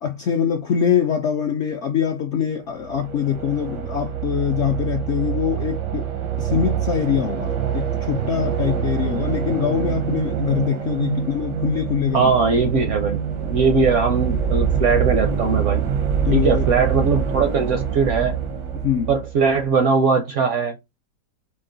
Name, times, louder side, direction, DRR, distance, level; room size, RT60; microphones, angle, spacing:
voice 1, 0.0-6.1 6.4-12.3 16.2-16.7 18.8-19.1, left 8 dB, 70° left, 0.6 m, -23 dB
sound 1, 2.7-19.7, right 8 dB, 85° right, 1.5 m, -25 dB
voice 2, 12.1-15.8 16.3-18.4 19.1-20.8, right 4 dB, 65° right, 0.7 m, -20 dB
5.2 x 2.3 x 3.7 m
omnidirectional pair, 1.8 m